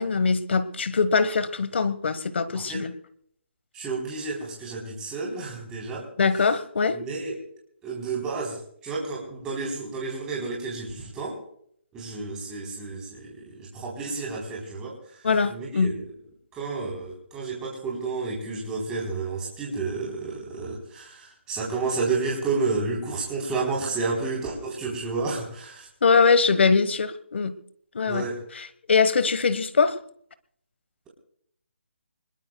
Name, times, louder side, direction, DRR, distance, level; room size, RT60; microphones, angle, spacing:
voice 1, 0.0-2.9 6.2-7.0 15.2-15.9 26.0-27.5 27.9-28.3 28.5-30.0, left 5 dB, 65° left, 1.4 m, -22 dB
voice 2, 3.7-6.1 6.9-7.4 7.8-11.4 11.9-15.2 15.5-16.0 16.5-25.9 28.1-28.4, right 4 dB, 10° right, 3.8 m, -31 dB
25.5 x 21.5 x 2.3 m
hypercardioid pair, 165°, 7 cm